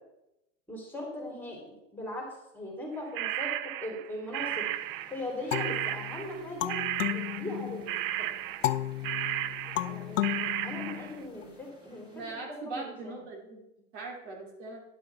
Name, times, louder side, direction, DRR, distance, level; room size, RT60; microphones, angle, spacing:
voice 1, 0.7-4.7 5.1-6.8 7.1-8.3 9.8-12.2 12.5-13.2, left 1 dB, 5° left, -1 dB, 2.9 m, -39 dB
sound 1, 3.1-5.3 5.5-11.1, right 14 dB, 45° right, 0.5 m, -34 dB
sound 2, 4.3-12.3, equal, 10° right, 2.9 m, -57 dB
sound 3, 5.5-8.0 8.6-11.4, left 14 dB, 75° left, 0.6 m, -34 dB
voice 2, 12.1-13.6 13.9-14.8, right 3 dB, 60° right, -1 dB, 3.1 m, -40 dB
10.0 x 6.9 x 4.6 m, 0.90 s
hypercardioid pair, 120°, 39 cm